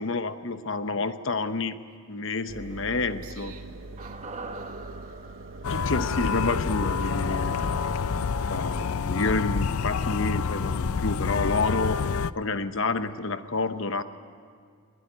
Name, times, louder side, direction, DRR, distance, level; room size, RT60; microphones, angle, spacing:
voice 1, 0.0-1.8 2.1-3.5 5.7-7.5 8.5-12.0 12.3-14.0, left 3 dB, 60° left, 1.0 m, -29 dB
Engine, 2.5-8.9, right 2 dB, 60° right, 0.7 m, -42 dB
voice 2, 3.2-5.7, right 6 dB, 90° right, 2.2 m, -54 dB
sound 1, 4.0-8.3 8.6-8.7, right 3 dB, 30° right, 1.1 m, -44 dB
sound 2, 5.6-12.3, left 5 dB, 85° left, 0.5 m, -28 dB
21.5 x 19.5 x 9.2 m
head